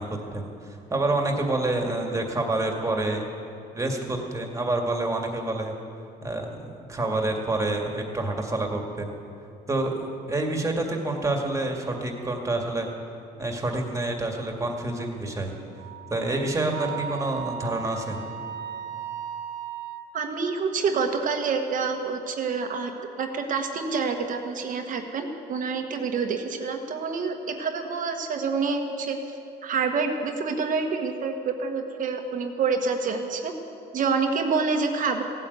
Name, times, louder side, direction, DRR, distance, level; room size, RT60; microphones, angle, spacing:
voice 1, 0.0-3.3 3.7-5.7 6.2-9.1 9.7-10.0 10.3-12.9 13.4-15.5 16.1-18.2, right 2 dB, 20° right, 2 dB, 2.2 m, -28 dB
Wind instrument woodwind instrument, 15.8-20.1, right 8 dB, 90° right, 1.3 m, -37 dB
voice 2, 20.1-22.9 23.2-29.2 29.6-33.5 33.9-35.2, right 5 dB, 50° right, 3 dB, 1.3 m, -27 dB
16.5 x 9.0 x 8.2 m, 2.6 s
cardioid pair, 110°, 17 cm